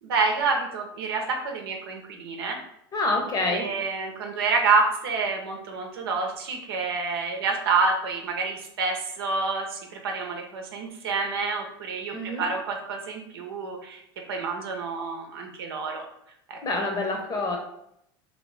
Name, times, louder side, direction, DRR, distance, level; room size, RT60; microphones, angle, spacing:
voice 1, 0.0-2.6 3.5-14.0 14.3-16.0 16.5-16.6, right 4 dB, 90° right, 3 dB, 0.7 m, -28 dB
voice 2, 2.9-3.7 12.1-12.5 16.6-17.6, left 2 dB, 30° left, 3 dB, 0.8 m, -27 dB
2.8 x 2.8 x 3.2 m, 0.76 s
supercardioid pair, 95°, 12 cm